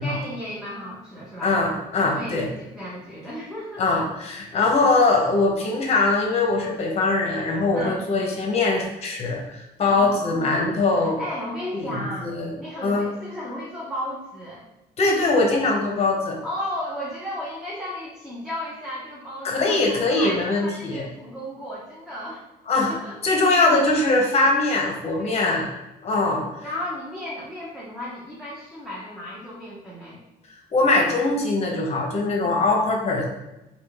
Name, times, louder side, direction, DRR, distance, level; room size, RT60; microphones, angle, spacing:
voice 1, 0.0-1.5 2.0-3.8 7.7-8.1 9.8-10.5 11.0-12.3 12.6-14.6 16.4-22.4 22.9-23.2 25.2-25.6 26.6-30.2, left 1 dB, ahead, -7 dB, 0.8 m, -34 dB
voice 2, 1.4-2.5 3.8-11.2 11.7-12.5 12.8-13.1 15.0-16.4 19.4-21.0 22.7-23.0 23.2-25.7 26.0-26.5 30.7-33.2, left 3 dB, 40° left, 1 dB, 0.9 m, -22 dB
3.6 x 2.3 x 3.4 m, 0.94 s
cardioid pair, 110°, 17 cm